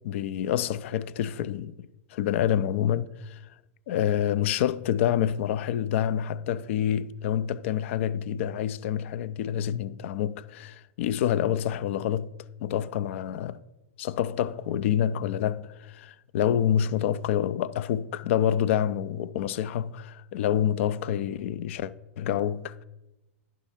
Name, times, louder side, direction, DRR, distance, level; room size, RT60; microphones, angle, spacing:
voice 1, 0.0-3.4 3.9-12.3 12.6-13.6 14.0-21.9 22.2-22.8, left 10 dB, 60° left, 0.4 m, -27 dB
10.5 x 3.6 x 5.7 m
hypercardioid pair, 110°, 8 cm